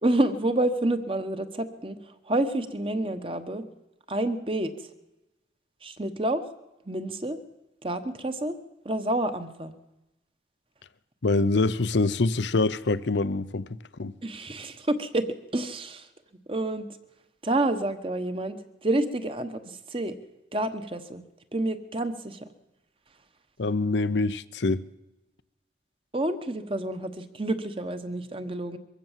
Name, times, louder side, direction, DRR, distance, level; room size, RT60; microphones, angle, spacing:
voice 1, 0.0-3.7 4.1-4.9 5.8-6.4 6.8-7.4 7.8-8.6 8.8-9.7 14.2-16.1 16.5-16.9 17.4-20.2 20.5-21.2 21.5-22.5 26.1-28.8, right 1 dB, 30° right, 1.2 m, -29 dB
voice 2, 11.2-14.1 23.6-24.8, left 3 dB, 75° left, 0.7 m, -25 dB
23.0 x 15.5 x 7.4 m
head